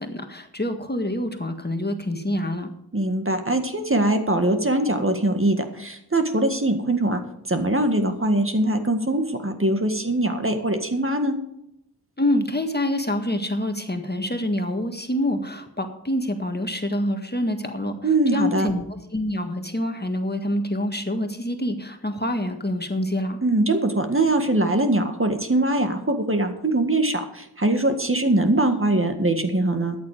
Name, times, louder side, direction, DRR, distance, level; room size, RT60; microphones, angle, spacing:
voice 1, 0.0-2.7 12.2-18.8 19.1-23.4, left 1 dB, 25° left, 5 dB, 1.7 m, -26 dB
voice 2, 2.9-7.2 7.5-11.4 18.0-18.7 23.4-30.0, right 1 dB, 35° right, 6 dB, 1.9 m, -22 dB
13.5 x 9.7 x 5.1 m, 0.78 s
wide cardioid pair, 55°, 39 cm